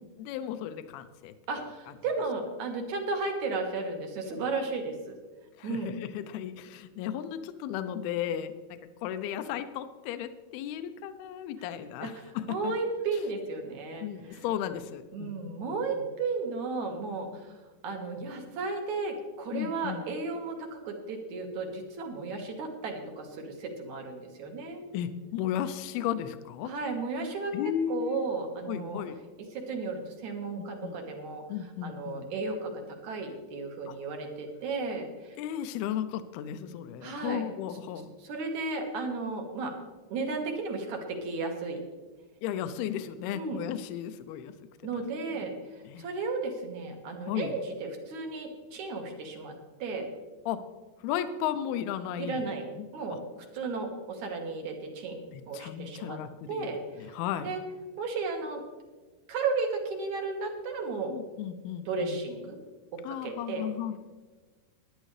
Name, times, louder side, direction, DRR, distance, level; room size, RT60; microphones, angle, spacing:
voice 1, 0.2-1.3 5.6-8.5 9.0-12.7 14.0-15.8 19.5-20.1 24.9-26.7 27.5-28.3 28.7-29.2 30.8-31.0 31.5-32.3 33.9-34.0 35.4-38.1 42.4-44.5 45.3-45.5 45.9-46.1 47.3-47.5 50.5-50.6 51.0-52.5 52.8-52.9 53.1-53.2 55.3-57.5 61.1-62.2 63.0-64.0, left 10 dB, 80° left, 10 dB, 2.6 m, -35 dB
voice 2, 1.5-5.2 5.6-6.0 12.0-12.2 12.5-14.4 15.1-17.6 17.8-24.8 26.6-27.5 27.9-29.0 29.5-31.4 31.8-35.4 37.0-37.4 38.2-39.7 40.1-41.8 43.3-43.6 44.8-49.5 49.8-50.1 52.2-55.2 55.5-56.2 56.5-57.1 57.4-57.6 58.0-58.6 59.3-61.1 61.9-62.6 62.9-63.7, right 3 dB, 55° right, 3 dB, 2.5 m, -34 dB
17.5 x 11.0 x 3.3 m, 1.3 s
omnidirectional pair, 4.6 m